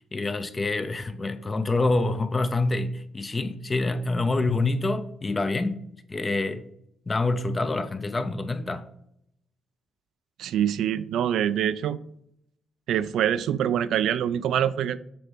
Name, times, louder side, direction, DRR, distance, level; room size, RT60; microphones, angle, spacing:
voice 1, 0.1-5.8 6.1-6.7 7.1-8.9, left 2 dB, 25° left, 0.5 m, -26 dB
voice 2, 10.4-12.0 12.9-15.0, right 10 dB, 75° right, 0.3 m, -25 dB
7.0 x 3.2 x 4.5 m
cardioid pair, 90°, 0 cm